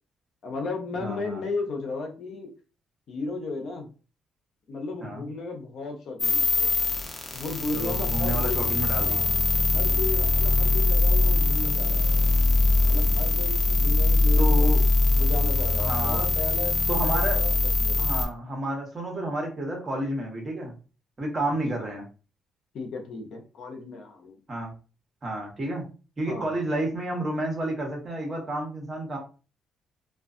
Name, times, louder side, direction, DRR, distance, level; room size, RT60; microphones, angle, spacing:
voice 1, 0.4-2.5 3.1-3.9 4.7-6.7 7.3-8.6 8.9-9.4 9.7-12.1 12.9-14.7 15.2-18.0 21.8-21.9 22.7-24.3 26.2-26.6, left 3 dB, 65° left, 3 dB, 0.7 m, -35 dB
voice 2, 1.0-1.4 5.0-5.2 7.7-9.2 14.4-14.8 15.8-16.3 16.9-17.4 18.0-20.7 21.2-22.1 24.5-24.7 25.2-25.9 26.2-29.2, right 1 dB, 35° right, 1 dB, 1.1 m, -30 dB
sound 1, 6.2-18.2, left 3 dB, 35° left, 0.7 m, -22 dB
2.4 x 2.3 x 2.5 m, 0.34 s
cardioid pair, 90°, 0 cm